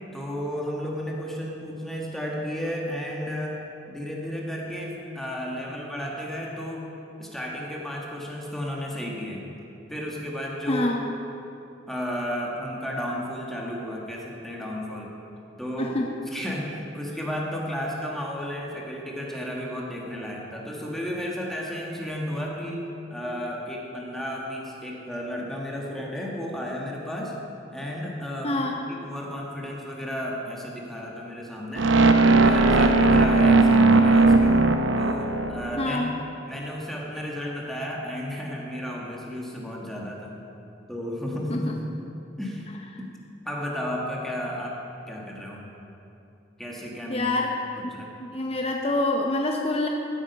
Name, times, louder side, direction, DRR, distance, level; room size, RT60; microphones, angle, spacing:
voice 1, 0.1-3.6 3.9-6.9 7.2-9.5 9.9-10.9 11.9-15.1 15.6-16.0 16.3-22.8 23.1-27.4 27.7-28.6 29.0-32.0 32.4-34.7 35.0-36.1 36.5-40.4 40.9-41.7 42.4-42.7 43.0-43.1 43.4-44.8 45.1-45.7 46.6-47.3 47.9-48.1, equal, ahead, -3 dB, 1.5 m, -33 dB
voice 2, 10.7-11.0 15.8-16.1 28.4-28.8 35.8-36.1 41.5-41.8 47.1-47.5 47.8-47.9 48.2-49.9, left 2 dB, 30° left, 1 dB, 0.8 m, -26 dB
sound 1, 31.8-35.9, right 3 dB, 85° right, 0.7 m, -18 dB
16.0 x 8.6 x 5.4 m, 2.8 s
head